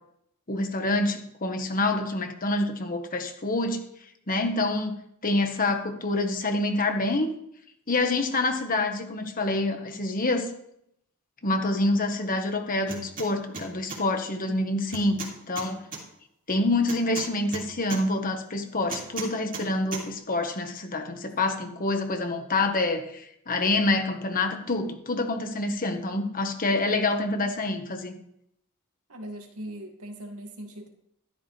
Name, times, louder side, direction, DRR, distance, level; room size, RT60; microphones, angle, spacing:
voice 1, 0.5-3.8 4.3-7.3 7.9-10.5 11.4-15.8 16.5-28.1, left 2 dB, 40° left, 5 dB, 1.5 m, -27 dB
sound 1, 12.9-13.3 13.5-14.0 14.9-16.0 16.9-18.0 18.9-19.7 19.9-20.0, right 4 dB, 40° right, 3.0 m, -36 dB
voice 2, 14.5-14.8 29.1-30.9, right 1 dB, 80° right, 2 dB, 2.2 m, -40 dB
13.0 x 13.0 x 3.4 m, 0.75 s
head